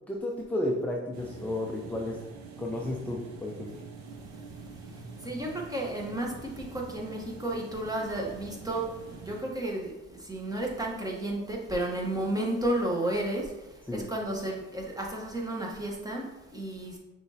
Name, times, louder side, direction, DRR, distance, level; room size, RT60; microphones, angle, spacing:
voice 1, 0.1-2.2 2.6-3.7 13.9-14.0, left 1 dB, 5° left, -1 dB, 0.5 m, -32 dB
sound 1, 1.1-9.4, right 4 dB, 65° right, 0.8 m, -46 dB
voice 2, 4.1-17.0, right 1 dB, 10° right, -1 dB, 1.0 m, -33 dB
6.0 x 3.1 x 2.7 m, 1.0 s
cardioid pair, 90°, 30 cm